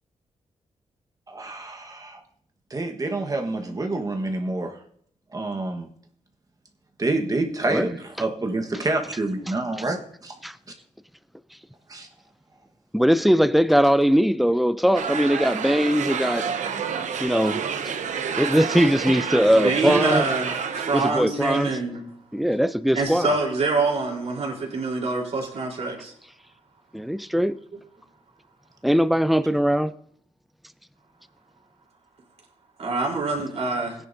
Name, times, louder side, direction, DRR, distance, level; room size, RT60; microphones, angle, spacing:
voice 1, 1.3-2.2 2.7-4.7 5.3-5.9 7.0-10.3 11.9-12.1, right 2 dB, 30° right, 1.3 m, -27 dB
voice 2, 12.9-16.5 17.2-17.6 18.4-20.2 20.9-21.7 22.3-23.4 26.9-27.6 28.8-29.9, equal, ahead, 0.4 m, -20 dB
sound 1, 14.9-21.1, right 7 dB, 80° right, 0.9 m, -29 dB
voice 3, 19.5-22.0 22.9-26.1 32.8-34.0, right 3 dB, 60° right, 3.7 m, -25 dB
17.5 x 10.5 x 2.7 m
cardioid pair, 100°, 12 cm